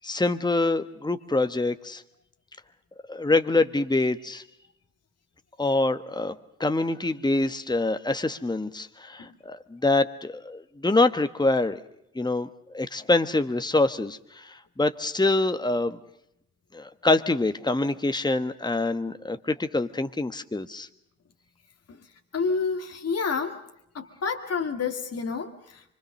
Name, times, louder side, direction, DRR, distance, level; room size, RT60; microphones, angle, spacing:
voice 1, 0.0-2.0 3.1-4.4 5.6-6.3 6.6-11.8 12.1-16.0 16.7-20.9, left 2 dB, 15° left, 9 dB, 1.4 m, -25 dB
voice 2, 22.3-23.6 23.9-25.8, left 5 dB, 50° left, 4 dB, 2.0 m, -29 dB
25.0 x 25.0 x 6.6 m, 0.78 s
hypercardioid pair, 45°, 33 cm